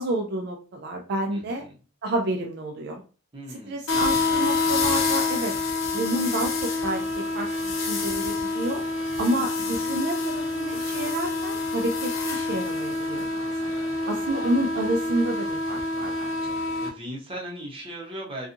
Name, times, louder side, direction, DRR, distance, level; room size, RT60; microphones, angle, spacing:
voice 1, 0.0-1.6 2.0-3.0 3.7-5.5 5.9-8.8 9.2-13.7 14.1-16.6, right 1 dB, 55° right, 2 dB, 0.3 m, -29 dB
voice 2, 1.3-1.8 3.3-3.8 14.0-14.1 16.8-18.5, right 1 dB, 25° right, -1 dB, 0.7 m, -38 dB
sound 1, 3.9-16.9, left 3 dB, 75° left, 0.6 m, -27 dB
2.6 x 2.3 x 2.5 m, 0.38 s
head